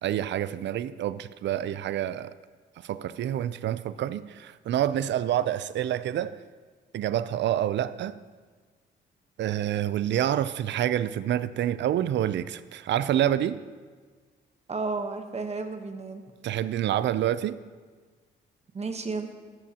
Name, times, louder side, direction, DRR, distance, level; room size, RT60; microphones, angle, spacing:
voice 1, 0.0-2.3 2.8-6.3 6.9-8.1 9.4-13.6 16.4-17.6, right 11 dB, 65° right, 15 dB, 0.5 m, -27 dB
voice 2, 14.7-16.2 18.7-19.3, right 3 dB, 35° right, 6 dB, 1.1 m, -32 dB
13.5 x 12.5 x 2.9 m, 1.5 s
cardioid pair, 90°, 20 cm